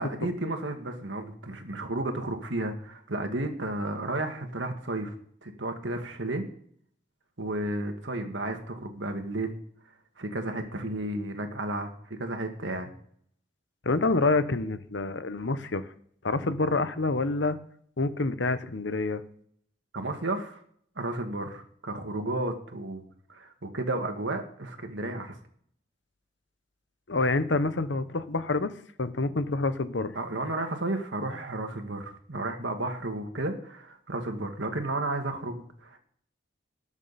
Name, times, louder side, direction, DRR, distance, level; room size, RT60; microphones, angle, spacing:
voice 1, 0.0-5.2 5.4-6.5 7.4-9.6 10.2-12.9 19.9-20.6 21.0-23.0 23.3-25.4 30.2-36.0, right 2 dB, 75° right, 5 dB, 1.9 m, -32 dB
voice 2, 13.8-15.9 16.2-17.6 18.0-19.2 27.1-28.7 29.0-30.2, left 3 dB, 70° left, 12 dB, 0.9 m, -27 dB
19.0 x 7.2 x 4.2 m, 0.63 s
head